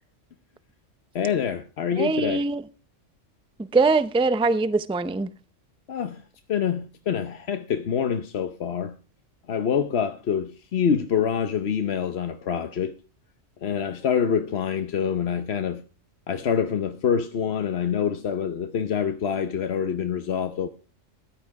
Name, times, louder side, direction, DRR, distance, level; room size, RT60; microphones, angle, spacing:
voice 1, 1.1-2.4 5.9-6.2 6.5-8.9 9.5-12.9 13.6-15.8 16.3-20.7, left 7 dB, 55° left, 1.1 m, -26 dB
voice 2, 2.0-2.6 3.6-5.3, right 3 dB, 10° right, 0.3 m, -22 dB
15.0 x 11.0 x 4.7 m
omnidirectional pair, 1.3 m